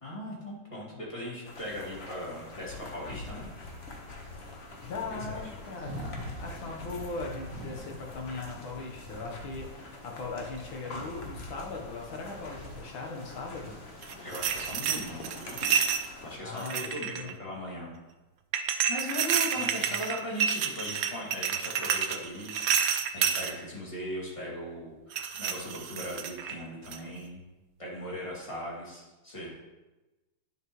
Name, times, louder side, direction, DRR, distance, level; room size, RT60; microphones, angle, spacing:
voice 1, 0.0-3.5 5.3-5.4 14.2-15.6 16.2-17.9 18.9-24.9 25.4-27.4 27.8-29.5, equal, 15° left, -6 dB, 2.3 m, -39 dB
sound 1, 1.4-16.4, left 2 dB, 40° left, 1.1 m, -44 dB
voice 2, 4.8-6.0 6.4-13.8 16.4-17.3 19.9-20.0, left 3 dB, 80° left, 0 dB, 2.0 m, -39 dB
sound 2, 5.7-15.3, equal, 70° right, 2.2 m, -50 dB
sound 3, 14.0-16.1 16.6-17.3 18.5-23.5 25.1-26.6 26.9-27.2, right 8 dB, 85° right, 0.8 m, -29 dB
10.5 x 6.5 x 3.1 m, 1.1 s
omnidirectional pair, 2.2 m